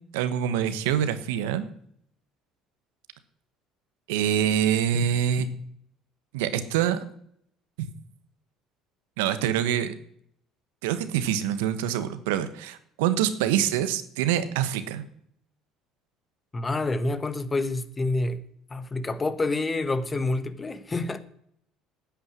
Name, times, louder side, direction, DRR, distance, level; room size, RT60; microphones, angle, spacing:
voice 1, 0.1-1.7 4.1-5.5 6.3-7.0 7.8-7.9 9.2-9.9 10.8-15.0, right 10 dB, 90° right, 1.1 m, -25 dB
voice 2, 16.5-18.4 18.7-21.2, left 2 dB, 25° left, 1.3 m, -28 dB
9.9 x 8.7 x 9.7 m
supercardioid pair, 85°, 0 cm